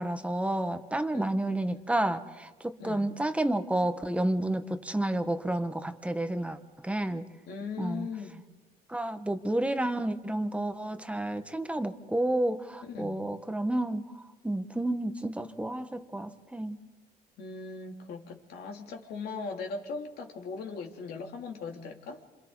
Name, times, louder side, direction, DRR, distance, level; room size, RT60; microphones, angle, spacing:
voice 1, 0.0-7.2 7.8-8.1 8.9-16.8, right 1 dB, 5° right, 8 dB, 1.3 m, -30 dB
voice 2, 1.1-1.5 2.8-3.1 7.5-8.4 12.9-13.2 17.4-22.2, left 4 dB, 70° left, 2 dB, 3.0 m, -39 dB
28.0 x 27.0 x 4.0 m, 1.3 s
cardioid pair, 110°, 17 cm